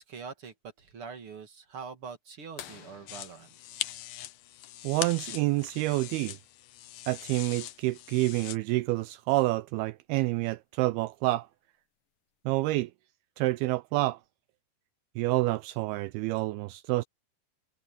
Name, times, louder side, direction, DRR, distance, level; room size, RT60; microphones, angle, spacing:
voice 1, 0.0-3.5, right 5 dB, 40° right, 2.3 m, -44 dB
sound 1, 2.6-5.0 7.0-7.1 9.3-9.4 11.1-11.4 12.2-12.3, left 10 dB, 60° left, 2.7 m, -50 dB
sound 2, 3.1-8.6, left 14 dB, 90° left, 1.8 m, -41 dB
voice 2, 4.8-6.4 7.1-11.5 12.5-12.9 13.4-14.2 15.2-17.0, right 20 dB, 85° right, 2.3 m, -28 dB
omnidirectional pair, 4.8 m